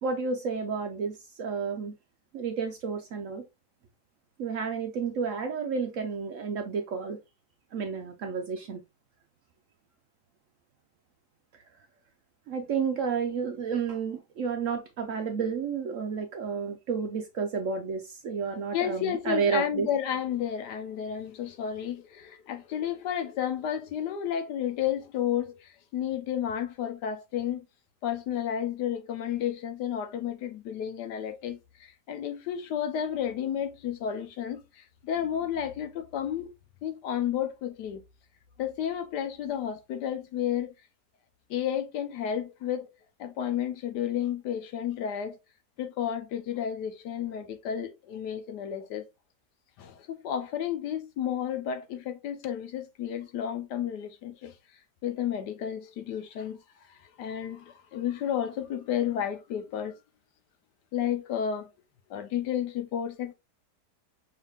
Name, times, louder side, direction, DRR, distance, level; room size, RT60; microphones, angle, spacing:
voice 1, 0.0-1.9 2.3-3.4 4.4-7.2 7.7-8.8 12.5-19.9, right 5 dB, 65° right, 0.8 m, -31 dB
voice 2, 18.7-27.6 28.0-36.6 36.8-38.0 38.6-40.7 41.5-42.9 43.2-45.4 45.8-49.0 49.8-54.5 55.0-56.6 56.9-60.0 60.9-61.7 62.1-63.3, left 9 dB, 80° left, 1.3 m, -32 dB
5.5 x 3.4 x 2.4 m
omnidirectional pair, 1.8 m